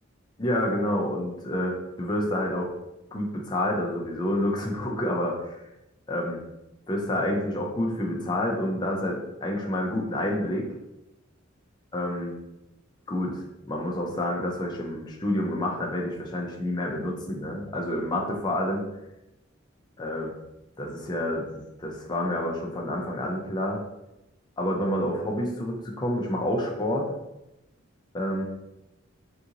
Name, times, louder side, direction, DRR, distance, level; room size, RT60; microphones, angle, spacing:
voice 1, 0.4-2.7 3.1-5.6 6.1-6.4 6.9-10.7 11.9-12.4 13.1-18.8 20.0-20.3 20.8-23.8 24.6-27.1 28.1-28.4, left 1 dB, 20° left, -1 dB, 0.5 m, -28 dB
3.6 x 2.5 x 2.8 m, 0.91 s
head